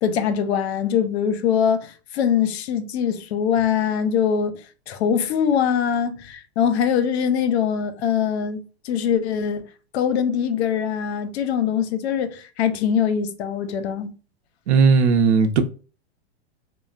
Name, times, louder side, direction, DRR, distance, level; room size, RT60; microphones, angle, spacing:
voice 1, 0.0-4.6 4.9-9.7 9.9-14.1, left 8 dB, 75° left, 0.6 m, -22 dB
voice 2, 14.7-15.6, right 5 dB, 80° right, 0.6 m, -16 dB
3.1 x 2.0 x 2.4 m
hypercardioid pair, 140°, 33 cm